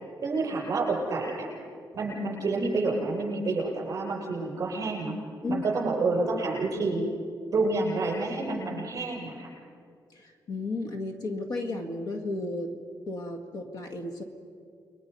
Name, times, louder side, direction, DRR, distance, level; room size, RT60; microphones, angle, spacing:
voice 1, 0.2-1.5 1.9-5.2 5.5-7.1 7.5-9.5, right 3 dB, 45° right, -2 dB, 7.5 m, -28 dB
voice 2, 10.1-12.8 13.1-14.2, left 2 dB, 60° left, 5 dB, 2.0 m, -33 dB
29.5 x 22.0 x 5.6 m, 2.3 s
wide cardioid pair, 175°, 8 cm